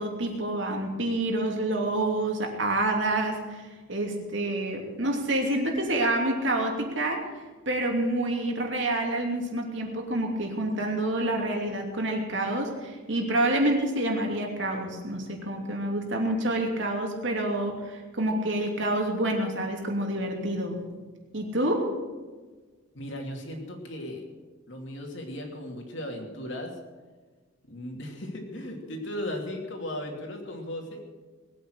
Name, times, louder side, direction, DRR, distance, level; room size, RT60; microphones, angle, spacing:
voice 1, 0.0-3.6 3.9-7.2 7.7-20.8 21.3-21.9, right 1 dB, 60° right, 1 dB, 2.9 m, -28 dB
voice 2, 22.9-24.3 24.7-26.8 27.7-31.0, left 1 dB, 60° left, 2 dB, 2.8 m, -36 dB
20.5 x 9.1 x 6.5 m, 1.4 s
head